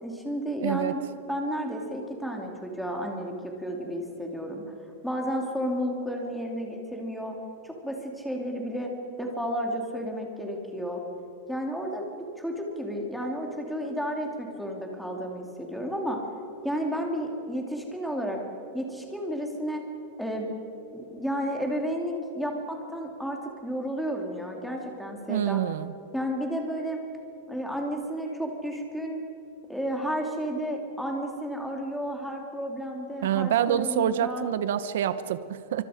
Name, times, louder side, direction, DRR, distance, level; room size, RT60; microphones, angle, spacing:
voice 1, 0.0-1.0 1.3-4.6 5.0-7.3 7.6-8.9 9.2-11.0 11.5-12.1 12.4-16.2 16.6-18.4 18.7-19.8 20.2-20.5 20.9-25.6 26.1-27.0 27.5-29.2 29.7-34.5, equal, ahead, 0 dB, 2.7 m, -32 dB
voice 2, 0.6-1.0 25.3-25.9 33.2-35.8, right 10 dB, 70° right, 13 dB, 1.0 m, -26 dB
26.5 x 25.0 x 5.1 m, 2.7 s
supercardioid pair, 165°, 0 cm